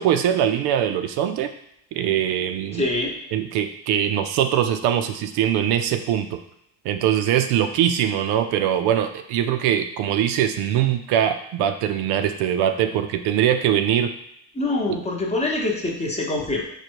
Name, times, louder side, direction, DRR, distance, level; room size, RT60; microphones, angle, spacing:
voice 1, 0.0-1.5 1.9-2.8 3.3-6.4 6.8-14.1, right 10 dB, 70° right, 7 dB, 0.5 m, -22 dB
voice 2, 2.7-3.1 14.5-16.6, left 2 dB, 15° left, -1 dB, 0.8 m, -24 dB
5.2 x 2.2 x 4.5 m, 0.79 s
cardioid pair, 125°, 40 cm